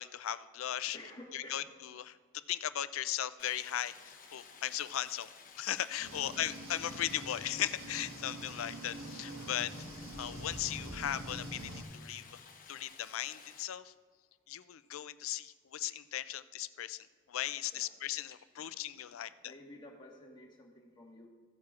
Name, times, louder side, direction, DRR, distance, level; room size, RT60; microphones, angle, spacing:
voice 1, 0.0-1.0 1.3-1.6 2.0-2.2 2.5-5.3 5.6-9.7 10.2-12.4 12.7-13.9 14.5-19.5, left 11 dB, 85° left, 14 dB, 0.4 m, -37 dB
voice 2, 0.9-1.7 6.1-6.5 17.7-17.9 18.6-18.8 19.4-21.3, left 1 dB, 25° left, -1 dB, 1.6 m, -52 dB
Stream, 3.4-13.6, left 5 dB, 40° left, 1.0 m, -55 dB
sound 1, 6.0-11.8, right 1 dB, 85° right, 1.4 m, -45 dB
16.0 x 8.8 x 2.5 m, 1.5 s
head